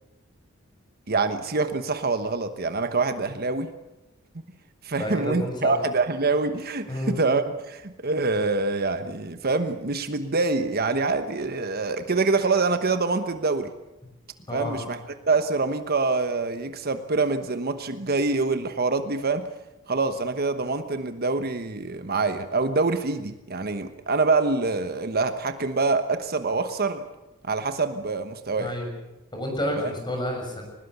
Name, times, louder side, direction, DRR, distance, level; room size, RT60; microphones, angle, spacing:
voice 1, 1.1-3.7 4.8-13.7 14.5-15.0 15.3-19.5 19.9-27.0 27.4-28.7 29.8-29.9, right 3 dB, 50° right, 9 dB, 1.2 m, -25 dB
voice 2, 5.0-5.7 6.9-7.2 14.5-14.8 28.6-28.9 29.3-30.6, left 1 dB, 20° left, 3 dB, 6.8 m, -29 dB
22.5 x 20.0 x 8.2 m, 0.99 s
head